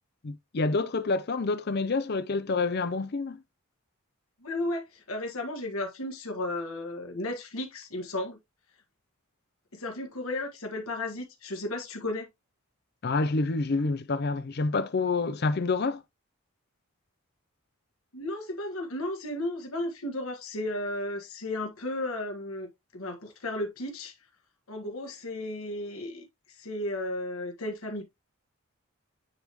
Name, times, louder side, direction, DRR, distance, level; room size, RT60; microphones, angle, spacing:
voice 1, 0.2-3.4 13.0-16.0, left 3 dB, 50° left, 0.5 m, -28 dB
voice 2, 4.4-8.4 9.7-12.3 18.1-24.1 24.7-26.3 26.6-28.1, left 1 dB, 80° left, 1.6 m, -34 dB
9.5 x 3.5 x 3.0 m
head